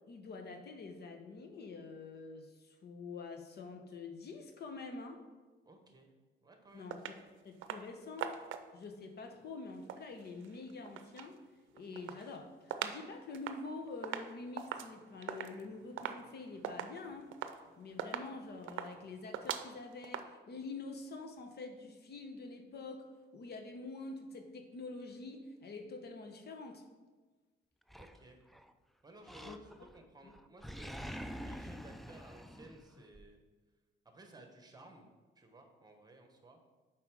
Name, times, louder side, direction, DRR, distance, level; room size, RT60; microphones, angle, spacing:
voice 1, 0.1-5.2 6.7-7.0 7.4-8.4 8.7-11.4 11.7-17.3 17.8-23.1 23.3-26.8 29.4-29.6 30.2-30.3, left 3 dB, 55° left, 5 dB, 0.9 m, -46 dB
voice 2, 5.6-6.1 6.4-7.0 28.0-28.4 29.0-33.4 34.0-35.1 35.3-36.6, right 2 dB, 20° right, 4 dB, 1.2 m, -57 dB
sound 1, 6.9-7.2 7.6-7.9 8.2-8.8 9.7-11.3 11.7-13.0 13.3-20.2, right 9 dB, 80° right, 0.5 m, -42 dB
Animal, 27.9-28.7 29.2-30.0 30.3-33.3, equal, ahead, 0.4 m, -46 dB
7.2 x 4.9 x 4.8 m, 1.3 s
cardioid pair, 90°, 20 cm